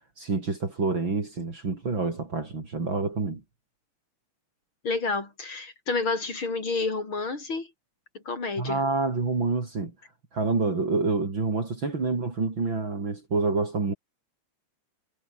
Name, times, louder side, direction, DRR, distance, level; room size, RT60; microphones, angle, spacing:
voice 1, 0.2-3.4 8.6-9.9 10.3-13.9, right 3 dB, 40° right, 4.5 m, -27 dB
voice 2, 4.8-7.7 8.3-8.8, left 3 dB, 40° left, 6.2 m, -29 dB
omnidirectional pair, 3.4 m